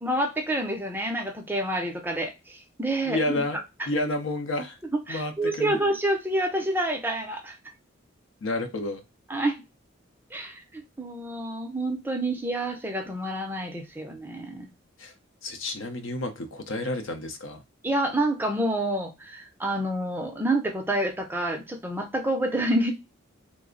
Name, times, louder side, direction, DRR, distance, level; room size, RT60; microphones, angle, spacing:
voice 1, 0.0-3.4 5.1-7.6 9.3-9.6 10.3-14.7 17.8-22.9, right 1 dB, 10° right, 3 dB, 0.4 m, -28 dB
voice 2, 3.1-3.6 3.8-4.8 5.1-5.3 5.6-5.8 8.4-9.0 15.0-15.1 15.4-17.6, left 2 dB, 70° left, 6 dB, 0.6 m, -30 dB
3.3 x 2.0 x 3.7 m, 0.25 s
head